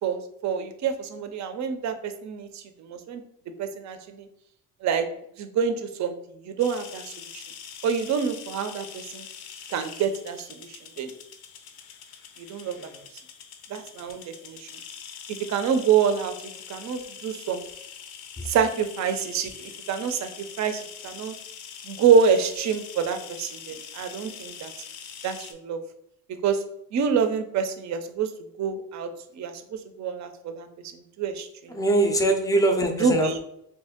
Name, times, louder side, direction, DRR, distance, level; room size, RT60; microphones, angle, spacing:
voice 1, 0.0-3.2 3.6-4.3 4.8-5.1 5.4-7.4 7.8-9.2 9.7-11.1 12.4-12.8 13.7-14.7 15.3-16.3 16.7-17.6 18.5-20.3 20.6-21.4 21.8-24.7 25.2-25.8 26.4-26.6 26.9-28.3 28.6-30.7 30.9-31.8 33.0-33.4, right 6 dB, 50° right, 8 dB, 0.5 m, -27 dB
sound 1, 6.6-25.5, left 7 dB, 80° left, 0.6 m, -43 dB
voice 2, 31.7-33.4, right 2 dB, 10° left, 5 dB, 0.5 m, -23 dB
2.8 x 2.6 x 3.6 m, 0.76 s
cardioid pair, 105°, 36 cm